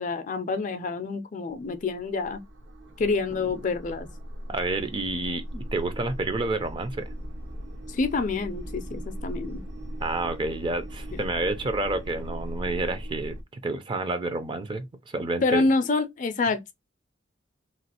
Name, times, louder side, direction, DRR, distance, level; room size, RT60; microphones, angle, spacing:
voice 1, 0.0-2.4 3.0-4.1 7.9-9.6 15.4-16.7, left 3 dB, 40° left, 0.4 m, -27 dB
sound 1, 1.5-13.4, equal, 70° right, 0.7 m, -38 dB
voice 2, 4.5-7.1 10.0-15.7, right 2 dB, 25° right, 0.4 m, -29 dB
3.0 x 2.3 x 2.8 m
head